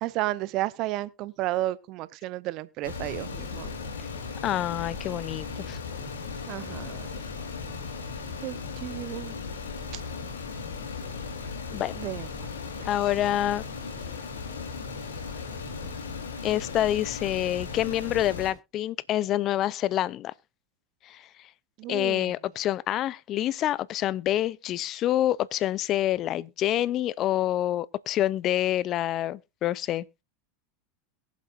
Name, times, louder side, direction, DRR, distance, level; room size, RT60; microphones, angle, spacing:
voice 1, 0.0-3.7 6.5-7.1 8.4-9.3 9.9-10.0 12.0-12.5 21.8-22.3, right 16 dB, 50° right, 0.7 m, -32 dB
sound 1, 2.8-18.5, left 5 dB, 80° left, 3.0 m, -37 dB
voice 2, 4.4-5.8 11.7-12.0 12.8-13.6 16.4-20.3 21.1-21.2 21.9-30.0, left 13 dB, 45° left, 0.5 m, -27 dB
22.5 x 7.4 x 2.5 m
hypercardioid pair, 90°, 0 cm